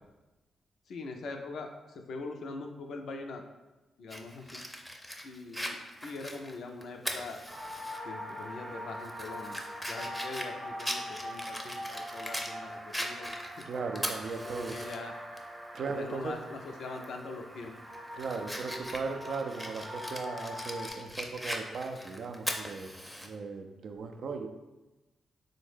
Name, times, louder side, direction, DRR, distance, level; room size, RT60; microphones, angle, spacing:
voice 1, 0.9-3.4 4.0-4.6 5.2-7.4 8.0-13.4 14.4-15.1 15.9-17.7, left 3 dB, 70° left, 3 dB, 0.4 m, -42 dB
Fire, 4.1-8.0 8.4-8.5 9.0-12.5 12.9-15.0 15.4-15.5 17.0-17.2 17.7-23.3, equal, ahead, 0.5 m, -40 dB
sound 1, 7.5-20.9, equal, 30° right, 0.8 m, -43 dB
voice 2, 13.6-14.8 15.7-16.4 18.1-22.9 23.2-24.5, right 4 dB, 65° right, 4 dB, 0.3 m, -37 dB
3.6 x 2.1 x 3.2 m, 1.1 s
hypercardioid pair, 40°, 0 cm